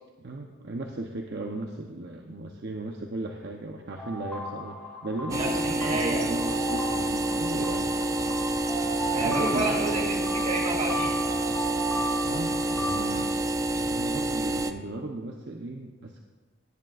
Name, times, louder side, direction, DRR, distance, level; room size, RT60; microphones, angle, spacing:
voice 1, 0.2-8.4 9.1-9.8 12.2-13.3 13.7-16.2, right 2 dB, 60° right, 1 dB, 0.8 m, -36 dB
sound 1, 4.0-13.2, right 1 dB, 5° left, 3.4 m, -35 dB
sound 2, 5.3-14.7, right 2 dB, 15° right, 0.4 m, -28 dB
voice 2, 5.3-6.2 8.2-8.3 9.1-11.2, right 2 dB, 40° right, -2 dB, 2.9 m, -30 dB
18.5 x 10.0 x 2.5 m, 1.3 s
head